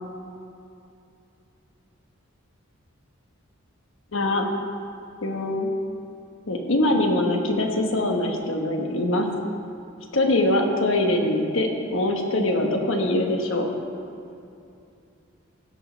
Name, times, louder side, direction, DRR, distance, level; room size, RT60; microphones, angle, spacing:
voice 1, 4.1-4.5 5.2-5.7 6.5-9.3 10.1-13.7, left 1 dB, 65° left, 2 dB, 1.2 m, -23 dB
16.0 x 6.3 x 4.5 m, 2.6 s
head